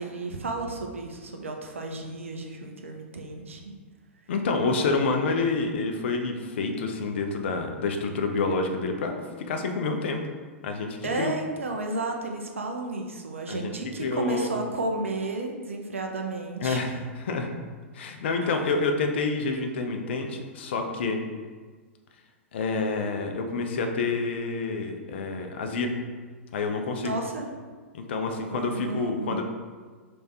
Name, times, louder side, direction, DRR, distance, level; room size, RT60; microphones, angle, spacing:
voice 1, 0.0-3.7 4.9-5.0 11.0-16.8 18.4-18.7 27.0-27.5 28.5-29.4, right 2 dB, 80° right, 2 dB, 0.6 m, -32 dB
voice 2, 4.3-9.2 9.5-10.2 10.6-11.4 13.5-13.7 14.0-14.5 16.6-17.5 17.9-21.2 22.5-25.9 26.5-27.2 27.9-29.4, left 3 dB, 60° left, 4 dB, 0.6 m, -28 dB
3.4 x 3.3 x 4.1 m, 1.5 s
figure-of-eight pair, 100°, 7 cm